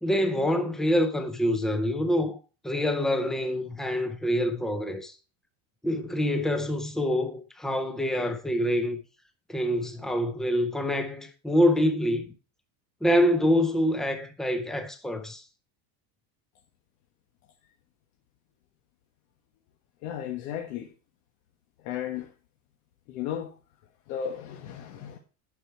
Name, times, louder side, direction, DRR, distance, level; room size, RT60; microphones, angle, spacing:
voice 1, 0.0-5.2 5.8-9.0 9.5-12.3 13.0-15.4, equal, ahead, 0.5 m, -26 dB
voice 2, 20.0-20.9 21.8-22.3 23.1-23.5 24.1-25.2, left 9 dB, 90° left, 1.4 m, -34 dB
10.0 x 6.0 x 4.5 m
cardioid pair, 180°, 41 cm